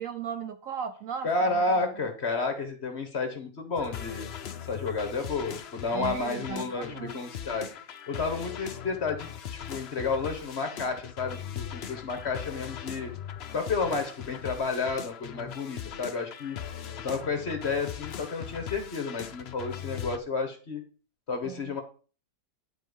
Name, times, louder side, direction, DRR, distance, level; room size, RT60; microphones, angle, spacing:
voice 1, 0.0-1.8 5.9-7.2 21.4-21.7, right 7 dB, 65° right, 9 dB, 0.9 m, -37 dB
voice 2, 1.2-4.3 4.6-7.7 8.1-9.3 9.7-13.1 13.5-16.6 17.0-20.8 21.3-21.8, left 3 dB, 40° left, 6 dB, 1.6 m, -31 dB
sound 1, 3.8-20.2, left 8 dB, 55° left, 0.7 m, -40 dB
10.5 x 4.4 x 5.4 m, 0.38 s
omnidirectional pair, 1.8 m